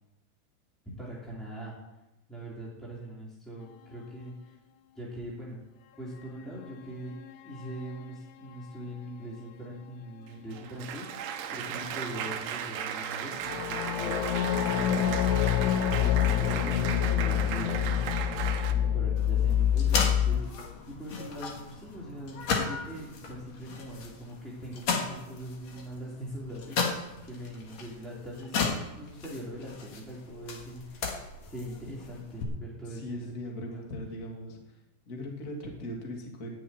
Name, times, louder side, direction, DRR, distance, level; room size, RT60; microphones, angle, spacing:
voice 1, 0.8-1.8 2.3-4.6 4.9-5.6 6.0-7.1 7.4-14.2 14.7-15.3 15.9-26.9 27.2-33.2 33.7-33.9, right 1 dB, ahead, -7 dB, 1.5 m, -42 dB
sound 1, 7.0-8.3 13.4-20.4, left 10 dB, 85° left, 3.1 m, -27 dB
Applause, 10.3-18.7, right 8 dB, 80° right, 2.2 m, -36 dB
sound 2, 19.2-32.4, left 4 dB, 55° left, 2.0 m, -35 dB
voice 2, 32.9-34.6 35.0-36.6, left 1 dB, 35° left, 0 dB, 1.3 m, -39 dB
12.0 x 7.1 x 9.0 m, 0.98 s
omnidirectional pair, 5.4 m